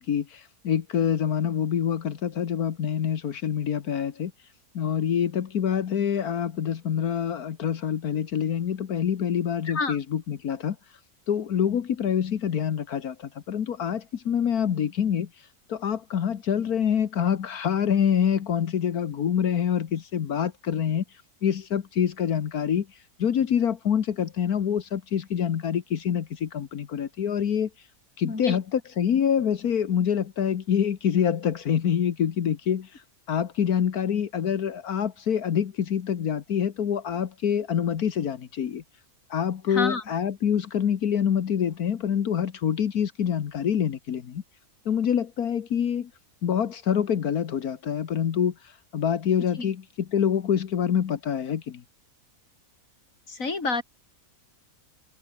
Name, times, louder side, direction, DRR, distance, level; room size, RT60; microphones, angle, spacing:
voice 1, 0.0-4.3 4.7-10.8 11.3-15.3 15.7-21.0 21.4-22.9 23.2-27.7 28.2-33.0 33.3-38.8 39.3-44.4 44.8-46.1 46.4-51.8, left 8 dB, 70° left, 1.7 m, -26 dB
voice 2, 28.2-28.6 39.7-40.0 49.6-49.7 53.3-53.8, left 3 dB, 55° left, 4.0 m, -28 dB
omnidirectional pair, 1.6 m